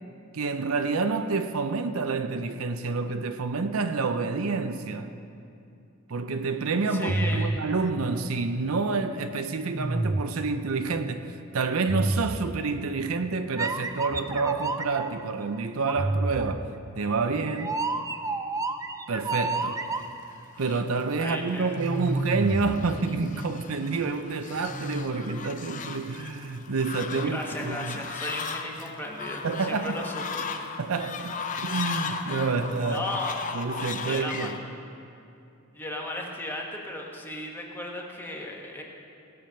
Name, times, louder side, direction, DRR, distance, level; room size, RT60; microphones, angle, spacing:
voice 1, 0.3-5.1 6.1-16.7 17.0-17.8 19.1-19.8 20.6-28.0 29.4-30.0 30.8-33.1 33.5-34.6, right 4 dB, 75° right, 0.6 m, -28 dB
voice 2, 6.9-7.5 21.2-22.0 27.2-30.5 32.9-33.4 34.0-34.5 35.7-38.8, left 1 dB, 10° left, 1.3 m, -36 dB
sound 1, 7.1-8.9 9.7-10.6 11.9-12.9 13.6-15.2 15.9-20.4 21.7-23.5 24.7-25.0, right 2 dB, 15° right, 0.4 m, -30 dB
Fowl, 19.8-34.6, left 5 dB, 35° left, 0.6 m, -37 dB
18.0 x 6.9 x 5.7 m
head